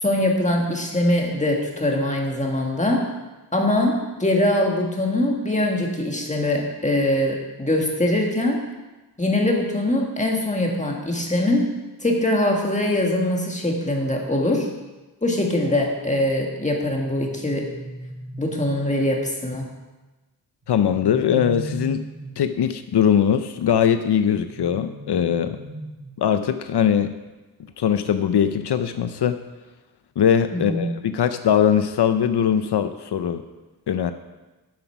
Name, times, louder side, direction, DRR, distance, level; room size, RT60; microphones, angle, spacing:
voice 1, 0.0-3.1 3.5-8.6 9.2-11.7 12.0-14.7 15.2-17.7 18.4-19.7 30.5-30.8, left 1 dB, 20° left, 0 dB, 1.8 m, -22 dB
sound 1, 16.9-18.9 20.6-22.6 24.3-26.3, right 3 dB, 45° right, 3.3 m, -37 dB
voice 2, 20.7-22.0 22.4-25.6 26.2-27.1 27.8-29.4 30.2-33.4 33.9-34.1, left 8 dB, 80° left, 9 dB, 0.6 m, -21 dB
9.7 x 8.1 x 5.8 m, 1.2 s
wide cardioid pair, 125°, 39 cm